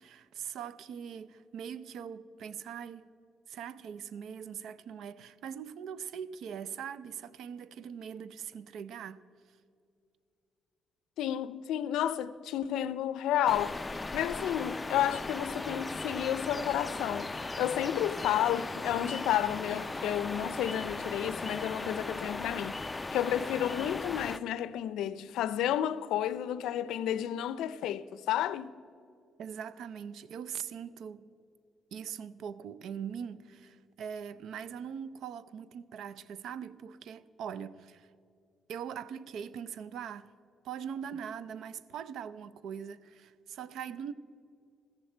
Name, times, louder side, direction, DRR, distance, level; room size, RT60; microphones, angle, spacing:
voice 1, 0.0-3.0 3.5-9.2 29.4-31.3 31.9-38.1 38.7-40.3 40.6-44.1, right 8 dB, 75° right, 0.5 m, -41 dB
voice 2, 11.2-22.8 23.1-28.7, left 11 dB, 85° left, 0.4 m, -31 dB
sound 1, 13.5-24.4, left 2 dB, 20° left, 0.4 m, -37 dB
14.5 x 14.0 x 4.4 m
cardioid pair, 90°, 0 cm